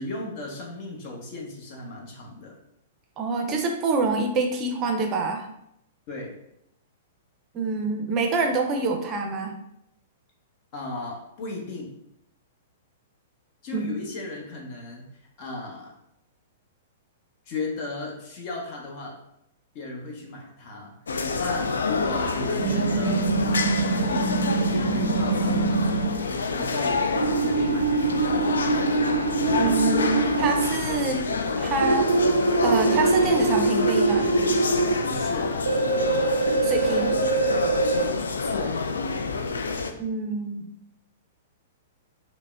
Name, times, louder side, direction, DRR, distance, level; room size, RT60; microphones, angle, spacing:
voice 1, 0.0-2.6 6.1-6.4 10.7-11.9 13.6-15.0 15.4-15.9 17.5-19.2 19.7-20.9 21.4-23.7 24.1-27.1 27.4-28.2 35.0-35.6 38.4-38.8, left 2 dB, 45° left, 0 dB, 0.9 m, -35 dB
voice 2, 3.2-5.4 7.5-9.6 13.7-13.9 29.6-31.3 31.6-32.3 32.6-34.3 36.6-37.2 40.0-40.7, right 3 dB, 30° right, 3 dB, 0.5 m, -26 dB
sound 1, 21.1-39.9, left 4 dB, 75° left, 0.3 m, -28 dB
sound 2, 22.6-26.1 27.2-30.7 31.8-34.9 35.7-38.0, right 3 dB, 80° right, 0.4 m, -24 dB
5.4 x 2.1 x 2.4 m, 0.77 s
figure-of-eight pair, 110°, 0 cm